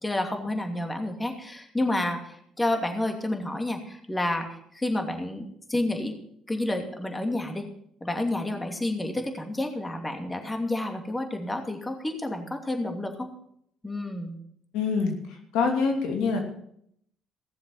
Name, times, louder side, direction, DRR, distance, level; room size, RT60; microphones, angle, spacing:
voice 1, 0.0-6.1 6.5-7.7 8.0-13.3 13.8-14.4, left 1 dB, 15° left, 4 dB, 2.7 m, -30 dB
voice 2, 14.7-16.4, left 5 dB, 75° left, 2 dB, 2.9 m, -26 dB
17.0 x 7.3 x 7.3 m, 0.69 s
hypercardioid pair, 60°, 0 cm